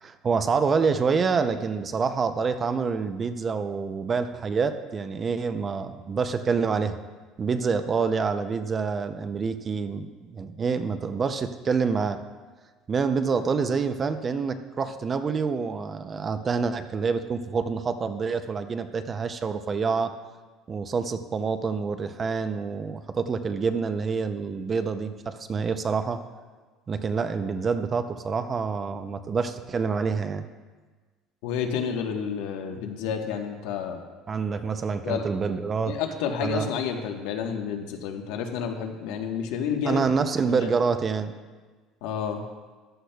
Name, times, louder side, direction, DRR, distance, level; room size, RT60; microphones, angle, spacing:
voice 1, 0.0-6.9 7.4-12.2 12.9-20.1 20.7-26.2 26.9-30.4 34.3-36.0 36.4-36.7 39.9-41.3, right 5 dB, 25° right, 9 dB, 0.5 m, -27 dB
voice 2, 31.4-34.0 35.0-35.3 35.8-40.0 40.4-40.7 42.0-42.4, left 7 dB, 85° left, 3 dB, 1.2 m, -30 dB
14.5 x 11.5 x 2.3 m, 1.4 s
cardioid pair, 160°, 0 cm